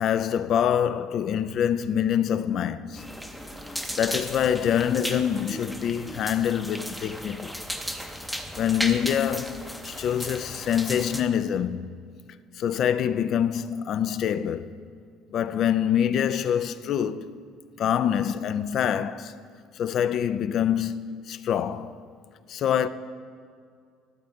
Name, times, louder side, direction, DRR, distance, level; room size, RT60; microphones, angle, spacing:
voice 1, 0.0-3.0 4.0-7.6 8.6-11.9 12.6-14.7 15.3-17.3 17.8-19.4 19.8-21.9 22.5-22.9, left 9 dB, 45° left, 0.3 m, -25 dB
sound 1, 2.9-11.2, equal, ahead, 0.6 m, -35 dB
13.0 x 7.7 x 3.5 m
cardioid pair, 140°, 0 cm